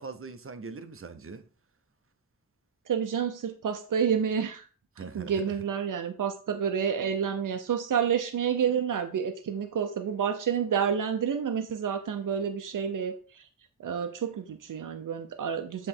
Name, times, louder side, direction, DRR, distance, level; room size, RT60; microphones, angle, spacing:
voice 1, 0.0-1.5 5.0-5.6, right 4 dB, 45° right, 0.6 m, -41 dB
voice 2, 2.9-4.7 5.0-13.4 13.8-15.9, right 7 dB, 90° right, 0.6 m, -29 dB
7.6 x 3.1 x 4.2 m
wide cardioid pair, 85°, 31 cm